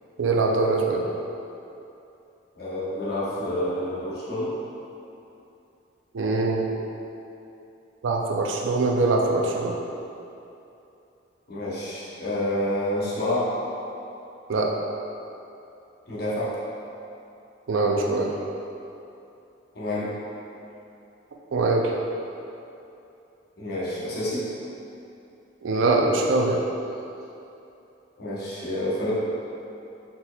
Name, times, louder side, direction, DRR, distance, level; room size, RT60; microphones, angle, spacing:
voice 1, 0.2-1.0 6.1-6.7 8.0-9.7 14.5-14.7 17.7-18.3 21.5-21.9 25.6-26.6, right 3 dB, 75° right, 0 dB, 0.4 m, -23 dB
voice 2, 2.6-4.6 11.5-13.5 16.1-16.5 19.7-20.1 23.6-24.5 28.2-29.1, left 1 dB, 50° left, -8 dB, 0.9 m, -28 dB
4.2 x 4.1 x 2.3 m, 2.8 s
head